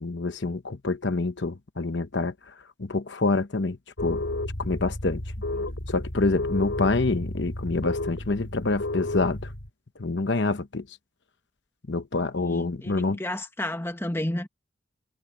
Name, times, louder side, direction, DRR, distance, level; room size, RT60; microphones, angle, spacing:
voice 1, 0.0-2.3 2.8-3.8 4.0-4.2 4.6-5.2 5.9-9.5 10.0-10.8 11.9-13.2, left 3 dB, 65° left, 1.0 m, -26 dB
sound 1, 4.0-9.7, left 2 dB, 80° left, 3.9 m, -32 dB
voice 2, 12.4-14.5, left 1 dB, 15° left, 1.4 m, -31 dB
head